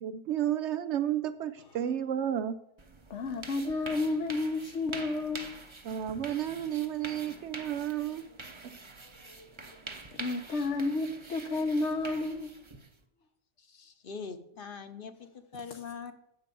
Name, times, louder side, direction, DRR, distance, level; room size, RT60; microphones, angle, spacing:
voice 1, 0.0-2.6 5.8-8.2 8.6-8.8, right 10 dB, 80° right, 0.9 m, -32 dB
sound 1, 2.8-13.0, right 3 dB, 25° right, 0.9 m, -46 dB
voice 2, 3.1-5.5 10.1-12.5 15.7-15.8, left 2 dB, 80° left, 1.2 m, -31 dB
voice 3, 13.6-16.1, left 5 dB, 55° left, 1.0 m, -43 dB
9.9 x 8.2 x 6.9 m
omnidirectional pair, 1.2 m